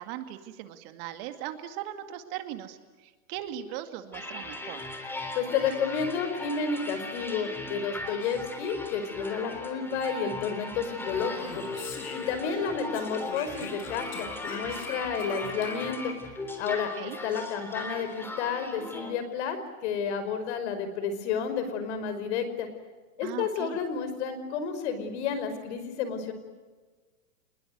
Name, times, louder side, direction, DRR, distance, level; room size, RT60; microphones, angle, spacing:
voice 1, 0.0-4.9 15.2-15.6 17.0-17.2 23.2-23.8, right 12 dB, 40° right, 8 dB, 2.2 m, -39 dB
sound 1, 4.1-19.1, left 2 dB, 5° left, 3.4 m, -38 dB
voice 2, 5.3-11.6 12.1-16.1 16.6-19.6 19.8-22.7 23.2-26.3, left 6 dB, 50° left, 10 dB, 5.4 m, -31 dB
Speech, 11.0-12.7 12.9-16.1, left 4 dB, 80° left, 6.9 m, -42 dB
27.5 x 21.0 x 9.4 m, 1.4 s
hypercardioid pair, 140°, 43 cm